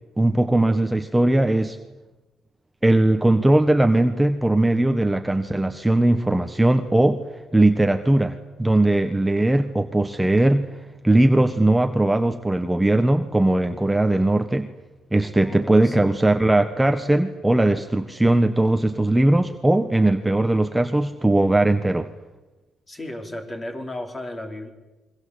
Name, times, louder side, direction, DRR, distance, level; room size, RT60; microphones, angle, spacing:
voice 1, 0.2-1.8 2.8-7.2 7.5-10.7 11.0-14.7 15.1-22.1, right 1 dB, 10° right, 7 dB, 1.4 m, -19 dB
voice 2, 15.4-16.2 22.9-24.7, left 1 dB, 25° left, 4 dB, 5.0 m, -34 dB
27.5 x 23.5 x 8.5 m, 1.1 s
cardioid pair, 90°, 0 cm